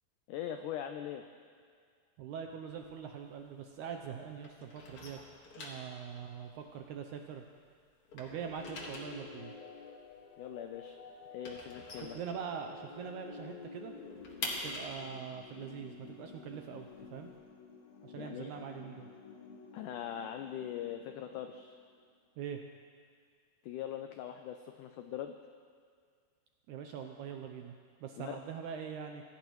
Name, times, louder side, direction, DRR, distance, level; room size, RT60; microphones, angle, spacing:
voice 1, 0.3-1.2 10.4-11.0 11.3-12.2 18.2-18.5 19.7-21.7 23.6-25.4 28.2-28.4, left 10 dB, 90° left, 6 dB, 1.8 m, -41 dB
voice 2, 2.2-5.2 5.6-7.4 8.1-9.5 12.1-13.9 14.6-17.3 18.0-19.1 22.4-22.6 26.7-27.7 28.0-29.2, right 7 dB, 90° right, 4 dB, 1.7 m, -43 dB
sound 1, 2.7-4.1 4.4-7.6 7.9-12.9 13.2-13.3 13.6-17.4, left 2 dB, 45° left, 2.2 m, -45 dB
sound 2, 8.3-22.0, left 5 dB, 60° left, 2.0 m, -51 dB
25.0 x 16.0 x 3.1 m, 2.1 s
omnidirectional pair, 4.4 m